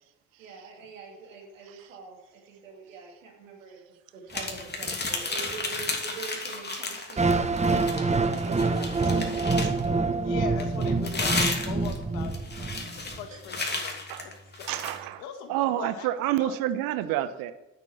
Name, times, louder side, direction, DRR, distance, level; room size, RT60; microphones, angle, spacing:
voice 1, 0.4-3.8 4.1-10.1 13.0-13.4 15.7-15.8, right 5 dB, 90° right, 2.5 m, -45 dB
sound 1, 4.3-7.2 7.5-9.9 10.6-15.0, left 3 dB, 25° left, 3.0 m, -33 dB
sound 2, 7.2-13.2, right 3 dB, 20° right, 1.1 m, -26 dB
voice 2, 10.1-12.7 13.2-14.7 15.2-16.1 16.4-16.6, left 8 dB, 70° left, 1.8 m, -41 dB
voice 3, 14.7-15.2 15.5-17.5, right 13 dB, 65° right, 1.1 m, -28 dB
9.1 x 6.8 x 8.5 m
hypercardioid pair, 55°, 37 cm